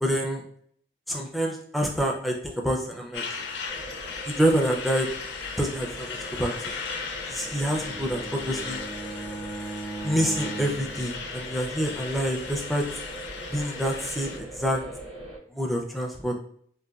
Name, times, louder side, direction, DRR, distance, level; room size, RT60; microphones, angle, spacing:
voice 1, 0.0-0.4 1.1-3.2 4.3-5.1 5.6-6.5 7.3-8.8 10.0-12.8 13.5-14.8 15.5-16.3, equal, ahead, 0 dB, 0.4 m, -27 dB
Truck, 3.1-14.4, left 5 dB, 75° left, 0.4 m, -37 dB
sound 1, 3.7-15.4, right 1 dB, 25° right, 0.7 m, -42 dB
Bowed string instrument, 7.2-11.9, right 3 dB, 65° right, 1.4 m, -39 dB
3.8 x 2.2 x 2.3 m, 0.64 s
head